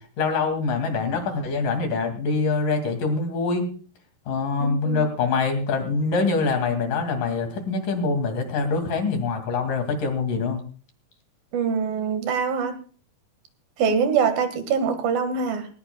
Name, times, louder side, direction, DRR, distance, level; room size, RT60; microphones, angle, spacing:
voice 1, 0.2-3.7 4.3-10.6, left 4 dB, 65° left, 5 dB, 4.0 m, -24 dB
voice 2, 4.6-5.0 11.5-12.8 13.8-15.7, right 6 dB, 75° right, 8 dB, 3.5 m, -24 dB
19.0 x 19.0 x 2.3 m, 0.40 s
omnidirectional pair, 4.2 m